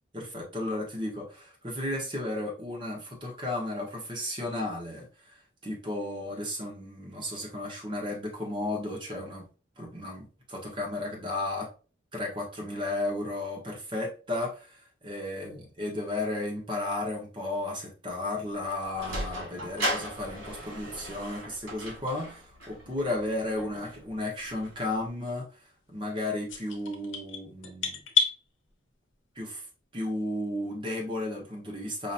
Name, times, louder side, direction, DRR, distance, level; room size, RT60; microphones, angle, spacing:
voice 1, 0.1-9.5 9.8-11.7 12.1-25.5 25.9-28.0 29.3-29.6 29.9-32.1, left 2 dB, 25° right, -1 dB, 1.2 m, -34 dB
Sliding door, 18.5-25.1, right 1 dB, 75° right, 2.0 m, -38 dB
sound 1, 26.5-28.4, left 6 dB, 80° left, 0.9 m, -28 dB
5.0 x 2.8 x 2.6 m, 0.36 s
head